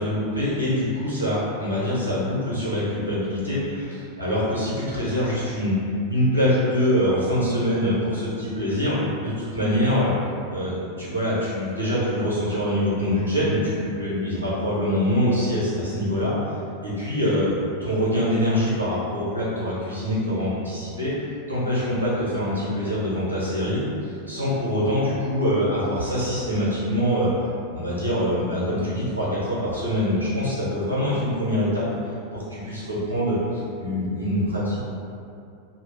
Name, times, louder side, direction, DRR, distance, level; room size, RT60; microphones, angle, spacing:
voice 1, 0.0-5.7 6.1-10.1 10.5-16.3 16.8-17.5 17.8-27.3 27.7-31.9 32.3-34.8, equal, 80° right, -9 dB, 0.7 m, -24 dB
2.3 x 2.0 x 3.2 m, 2.5 s
figure-of-eight pair, 90°, 0 cm